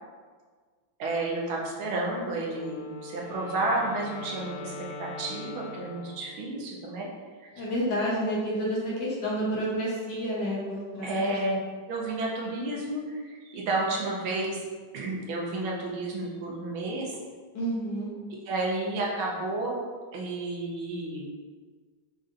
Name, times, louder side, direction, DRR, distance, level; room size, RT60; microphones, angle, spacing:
voice 1, 1.0-7.1 7.4-7.5 11.0-11.6 11.9-14.6 14.9-17.2 18.4-19.8 20.1-21.3, right 2 dB, 75° right, -3 dB, 1.5 m, -31 dB
Wind instrument woodwind instrument, 2.5-6.6, left 3 dB, 85° left, 1.6 m, -42 dB
voice 2, 7.6-11.3 17.5-18.1, equal, 65° left, -6 dB, 1.4 m, -29 dB
5.3 x 2.5 x 2.5 m, 1.5 s
omnidirectional pair, 2.3 m